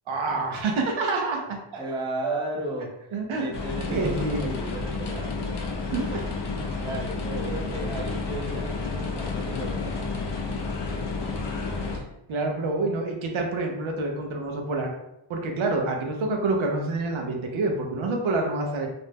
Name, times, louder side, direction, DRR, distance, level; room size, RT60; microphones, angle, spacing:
voice 1, 0.1-1.8 2.2-2.4 3.1-3.5 3.9-4.5 5.8-6.2 6.7-6.9 7.3-7.7 12.3-14.9 15.3-18.9, right 3 dB, 70° right, 1 dB, 0.7 m, -27 dB
voice 2, 1.8-2.9 3.4-5.3 6.8-10.2, right 1 dB, 10° right, -2 dB, 0.6 m, -35 dB
sound 1, 3.5-12.0, left 4 dB, 55° left, 0.6 m, -30 dB
2.6 x 2.1 x 3.2 m, 0.86 s
cardioid pair, 70°, 49 cm